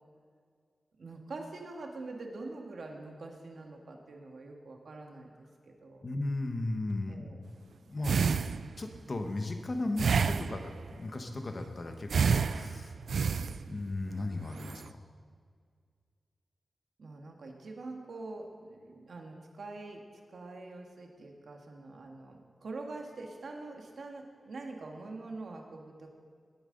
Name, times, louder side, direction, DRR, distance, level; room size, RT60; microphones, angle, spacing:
voice 1, 1.0-6.0 7.1-7.4 17.0-20.0 20.3-26.1, right 3 dB, 70° right, 2 dB, 1.5 m, -44 dB
voice 2, 6.0-7.3 7.8-8.4 8.8-13.0 13.5-15.0, left 2 dB, 35° left, 5 dB, 1.0 m, -36 dB
sound 1, 8.0-9.0 10.0-10.9 12.1-14.0 14.5-14.9, right 5 dB, 85° right, 0.3 m, -29 dB
19.0 x 8.9 x 3.9 m, 2.1 s
wide cardioid pair, 155°, 0 cm